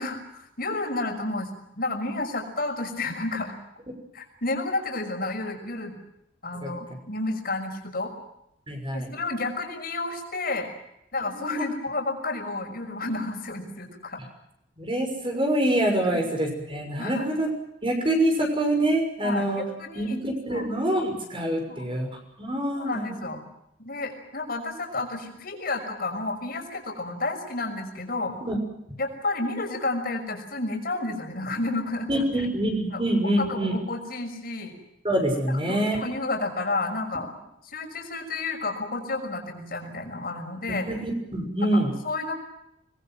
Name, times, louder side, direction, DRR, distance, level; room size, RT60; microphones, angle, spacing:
voice 1, 0.0-1.5 1.8-3.6 4.1-6.0 6.4-8.1 8.9-10.7 11.1-14.2 16.1-16.2 17.0-17.3 19.2-20.2 20.5-20.7 21.7-21.9 22.7-23.4 23.8-28.4 29.0-32.3 32.9-33.0 33.4-34.7 35.5-37.3 37.7-40.9 41.6-42.3, left 2 dB, 50° left, 4 dB, 6.1 m, -31 dB
voice 2, 8.7-9.1 11.4-11.7 14.8-17.5 17.8-19.6 20.0-22.1 22.4-23.2 28.4-28.6 32.1-33.8 35.0-36.0 40.8-41.9, right 1 dB, 30° right, 3 dB, 6.4 m, -25 dB
27.5 x 21.5 x 7.7 m, 0.82 s
head